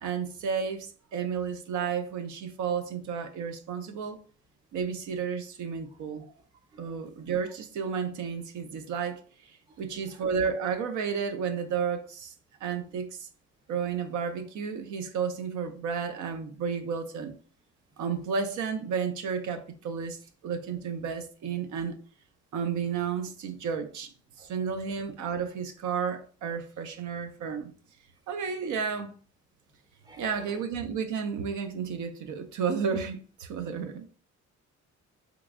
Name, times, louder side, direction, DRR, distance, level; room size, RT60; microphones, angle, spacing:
voice 1, 0.0-4.2 4.7-6.3 6.8-12.3 12.6-13.3 13.7-17.3 18.0-20.2 20.4-22.0 22.5-24.1 24.4-27.7 28.3-29.1 30.2-34.0, right 6 dB, 75° right, 0.6 m, -32 dB
voice 2, 30.0-30.6, right 2 dB, 15° right, 0.5 m, -52 dB
3.4 x 3.0 x 2.4 m
cardioid pair, 90°, 30 cm